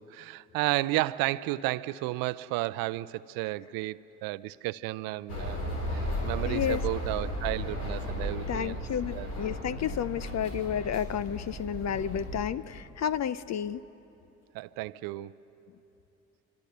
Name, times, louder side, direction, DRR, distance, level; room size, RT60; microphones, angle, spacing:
voice 1, 0.0-8.8 9.1-9.3 14.5-15.3, right 18 dB, 75° right, 18 dB, 0.6 m, -33 dB
sound 1, 5.3-12.4, equal, 80° left, 4.0 m, -35 dB
voice 2, 6.5-6.8 8.5-13.8, left 9 dB, 50° left, 16 dB, 0.6 m, -31 dB
25.5 x 25.5 x 6.7 m, 3.0 s
hypercardioid pair, 45°, 36 cm